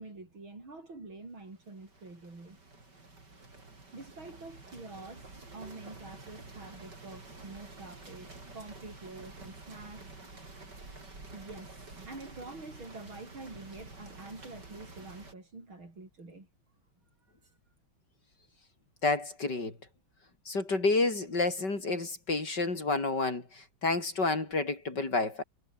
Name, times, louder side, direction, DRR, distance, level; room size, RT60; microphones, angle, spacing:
voice 1, 0.0-2.6 3.9-10.1 11.3-16.5, right 3 dB, 75° right, 7.1 m, -47 dB
sound 1, 1.4-15.3, right 3 dB, 55° right, 5.9 m, -50 dB
voice 2, 19.0-19.8 20.4-25.4, left 3 dB, 55° left, 5.2 m, -30 dB
omnidirectional pair, 2.2 m